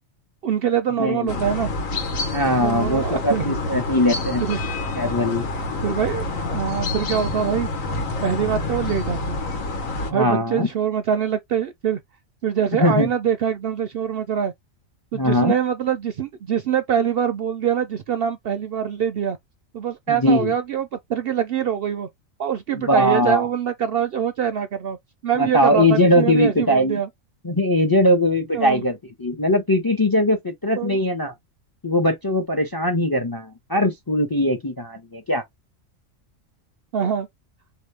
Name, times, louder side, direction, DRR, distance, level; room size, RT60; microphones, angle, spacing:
voice 1, 0.4-1.7 2.6-3.5 4.4-4.6 5.8-7.7 8.2-9.4 10.1-12.0 12.4-14.5 15.1-19.4 19.7-22.1 22.4-25.0 25.2-27.1 28.5-28.8 30.8-31.0 36.9-37.3, right 8 dB, 65° right, 0.6 m, -24 dB
voice 2, 1.0-1.3 2.3-4.4 4.9-5.5 10.1-10.7 12.7-13.1 15.1-15.5 20.1-20.5 22.9-23.5 25.4-27.0 27.4-31.3 31.8-35.4, left 1 dB, 25° left, 0.5 m, -20 dB
sound 1, 1.3-10.1, left 2 dB, 85° left, 1.4 m, -27 dB
4.1 x 2.9 x 3.3 m
omnidirectional pair, 1.4 m